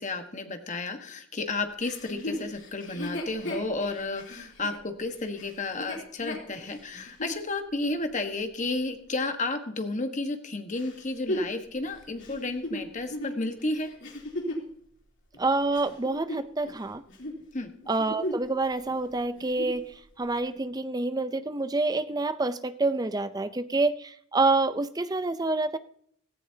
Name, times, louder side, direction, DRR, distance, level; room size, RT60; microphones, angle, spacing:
voice 1, 0.0-13.9 17.5-17.7, left 2 dB, 35° left, 6 dB, 1.4 m, -32 dB
Chuckle chortle, 1.8-7.4 8.0-8.1 10.7-14.7 15.3-16.8 17.1-17.4 17.8-18.5 18.8-18.9 19.3-19.8 20.5-20.6, left 1 dB, 60° left, 3.3 m, -36 dB
voice 2, 15.4-17.0 17.9-25.8, right 3 dB, 20° right, 12 dB, 0.5 m, -27 dB
17.0 x 15.0 x 2.8 m, 0.63 s
head